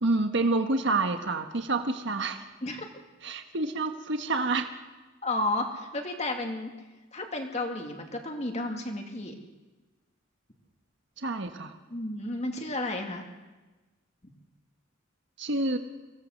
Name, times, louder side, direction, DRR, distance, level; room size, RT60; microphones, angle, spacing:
voice 1, 0.0-2.4 3.2-4.7 11.2-11.7 15.4-15.8, right 3 dB, 65° right, 6 dB, 1.4 m, -28 dB
voice 2, 5.2-6.7 7.1-9.4 11.9-13.3, left 2 dB, 35° left, 3 dB, 2.3 m, -32 dB
23.5 x 17.5 x 6.6 m, 1.2 s
head